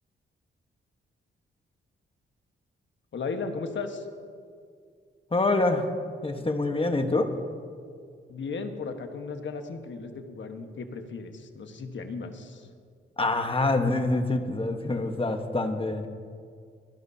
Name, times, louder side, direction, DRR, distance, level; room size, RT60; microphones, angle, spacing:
voice 1, 3.1-4.1 8.3-12.7, left 4 dB, 60° left, 6 dB, 1.4 m, -35 dB
voice 2, 5.3-5.9 6.2-7.3 13.2-16.1, left 2 dB, 25° left, 6 dB, 1.2 m, -26 dB
25.5 x 11.0 x 2.8 m, 2.2 s
cardioid pair, 75°, 21 cm